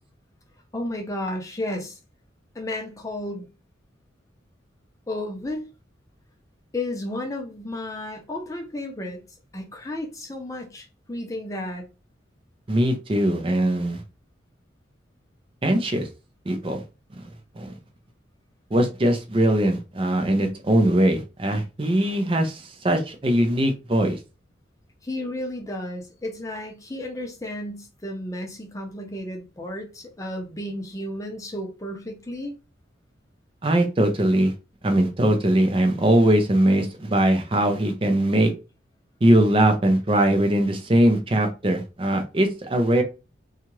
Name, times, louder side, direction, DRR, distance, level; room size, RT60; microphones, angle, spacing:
voice 1, 0.7-2.0 2.5-3.5 5.1-5.7 6.7-9.2 9.5-11.8 25.0-32.5, left 1 dB, 15° left, 0.6 m, -33 dB
voice 2, 12.7-14.0 15.6-16.1 16.5-16.8 17.2-17.3 17.6-17.7 18.7-24.2 33.6-34.5 34.8-38.5 39.2-43.0, right 1 dB, 30° right, 0.5 m, -21 dB
2.8 x 2.4 x 3.0 m
head